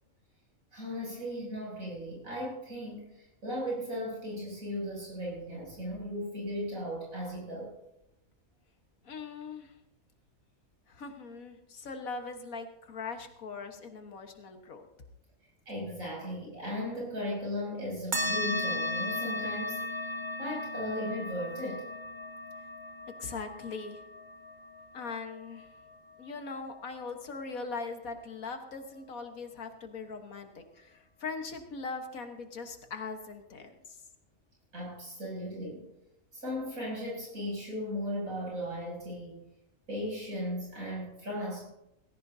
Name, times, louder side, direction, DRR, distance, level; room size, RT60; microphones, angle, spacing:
voice 1, 0.7-7.7 15.7-19.8 20.4-21.9 34.7-35.8 36.3-39.5 39.9-41.6, equal, 80° right, -3 dB, 7.6 m, -36 dB
voice 2, 9.0-9.7 10.9-14.9 23.2-24.0 24.9-25.7 26.2-34.0, left 4 dB, 85° left, 6 dB, 1.9 m, -40 dB
sound 1, 18.1-27.0, left 1 dB, 35° right, 1.8 m, -36 dB
18.0 x 16.0 x 2.8 m, 0.84 s
omnidirectional pair, 1.4 m